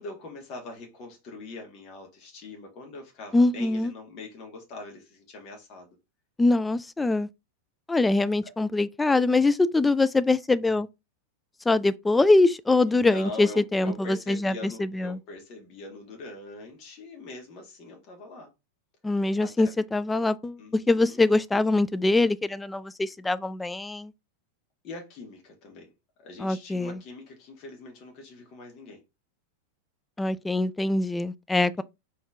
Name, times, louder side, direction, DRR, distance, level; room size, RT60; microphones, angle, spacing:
voice 1, 0.0-6.0 8.4-8.5 12.8-18.5 19.1-19.7 20.6-21.2 24.8-25.9 26.2-29.0 31.8-31.9, left 2 dB, 40° left, 1.6 m, -42 dB
voice 2, 3.3-3.9 6.4-7.3 7.9-10.9 11.7-15.2 19.0-24.1 26.4-27.0 30.2-31.8, left 2 dB, 10° left, 0.3 m, -23 dB
4.4 x 3.2 x 3.4 m
figure-of-eight pair, 90°, 0 cm